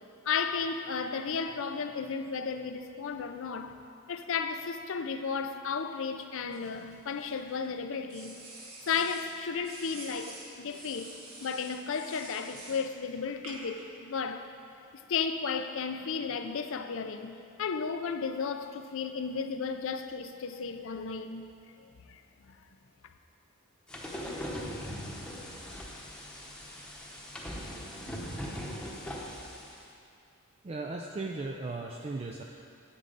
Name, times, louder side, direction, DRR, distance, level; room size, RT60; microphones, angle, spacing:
voice 1, 0.2-3.8 4.1-8.3 8.9-11.2 11.4-14.5 15.1-21.5 21.8-22.2 22.5-22.6, left 5 dB, 60° left, 0.5 m, -34 dB
sound 1, 6.5-7.5 8.1-9.3 9.6-12.9 13.4-13.8, right 2 dB, 80° right, 1.7 m, -47 dB
sound 2, 23.9-29.8, equal, 5° left, 1.0 m, -40 dB
voice 2, 30.6-32.4, right 3 dB, 30° right, 0.4 m, -36 dB
9.8 x 8.5 x 4.0 m
head